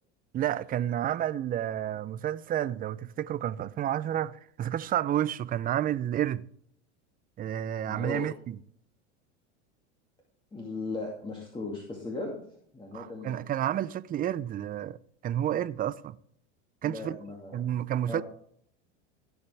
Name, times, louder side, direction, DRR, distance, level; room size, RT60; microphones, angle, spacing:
voice 1, 0.3-6.4 7.4-8.6 12.9-15.0 15.2-16.2 16.8-17.2 17.5-18.2, right 11 dB, 25° right, 0.5 m, -30 dB
voice 2, 7.8-8.3 10.5-12.4 12.7-13.4 16.8-17.6 18.1-18.2, left 3 dB, 15° left, 2.3 m, -37 dB
15.5 x 7.2 x 3.4 m
hypercardioid pair, 105°, 35 cm